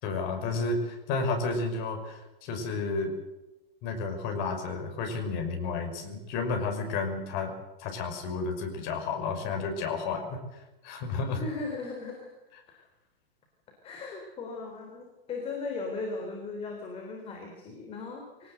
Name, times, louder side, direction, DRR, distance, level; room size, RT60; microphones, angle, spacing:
voice 1, 0.0-3.1 3.8-7.5 7.8-11.4, left 4 dB, 35° left, 4 dB, 5.7 m, -32 dB
voice 2, 11.4-12.3 13.8-18.5, left 3 dB, 20° left, 1 dB, 4.0 m, -37 dB
24.0 x 18.5 x 8.0 m, 1.0 s
hypercardioid pair, 150°, 30 cm